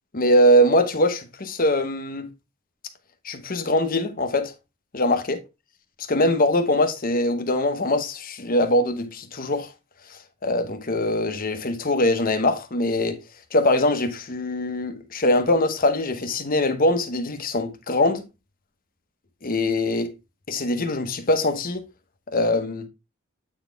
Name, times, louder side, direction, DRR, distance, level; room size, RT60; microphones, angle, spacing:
voice 1, 0.1-2.3 3.2-4.5 4.9-5.4 6.1-9.7 10.4-13.2 13.5-18.2 19.4-20.1 20.5-21.8 22.3-22.9, left 1 dB, 40° left, 1.0 m, -22 dB
8.5 x 4.2 x 3.4 m
head